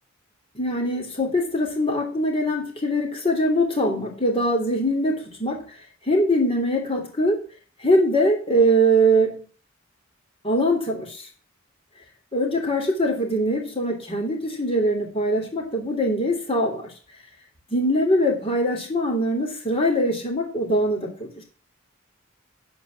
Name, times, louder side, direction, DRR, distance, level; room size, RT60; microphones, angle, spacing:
voice 1, 0.5-5.6 6.1-7.4 7.8-9.4 10.4-11.2 12.3-16.9 17.7-21.4, equal, 30° left, 1 dB, 3.2 m, -22 dB
11.0 x 5.3 x 7.4 m, 0.40 s
head